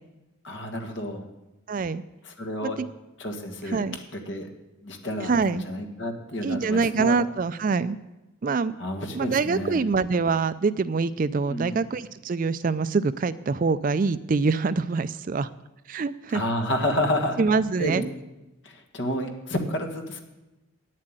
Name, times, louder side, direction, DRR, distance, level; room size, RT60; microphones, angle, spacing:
voice 1, 0.4-1.3 2.2-2.8 3.2-4.5 4.8-7.2 8.8-9.8 11.5-11.8 16.3-18.0 18.6-20.2, left 1 dB, 55° left, 4 dB, 1.6 m, -30 dB
voice 2, 1.7-2.0 2.6-2.7 3.7-4.0 5.3-5.6 6.4-8.0 8.4-8.8 9.1-15.5 15.9-16.4 17.4-18.0, right 4 dB, 40° right, 15 dB, 0.3 m, -25 dB
9.8 x 7.5 x 9.0 m, 1.0 s
head